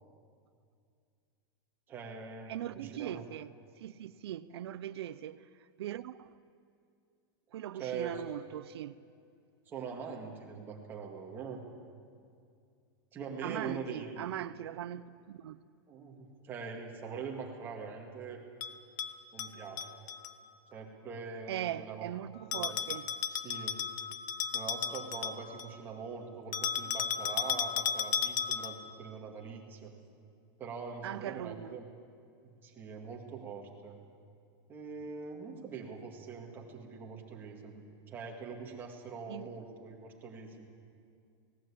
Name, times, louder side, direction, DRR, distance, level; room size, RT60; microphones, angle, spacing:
voice 1, 1.9-3.2 7.7-8.2 9.7-11.6 13.1-14.3 15.9-18.4 19.3-20.0 20.7-22.1 22.5-22.9 23.3-23.8 24.5-29.9 30.6-31.8 32.4-34.0 34.7-40.7, right 5 dB, 15° right, 2.1 m, -43 dB
voice 2, 2.5-3.5 3.8-5.5 5.8-6.3 7.5-9.0 13.4-15.6 21.5-23.1 31.0-31.8 39.3-39.5, right 11 dB, 85° right, 0.6 m, -40 dB
Bell, 18.6-20.3 22.5-25.8 26.5-28.9, left 8 dB, 50° left, 0.9 m, -35 dB
17.5 x 17.5 x 8.7 m
supercardioid pair, 180°, 13 cm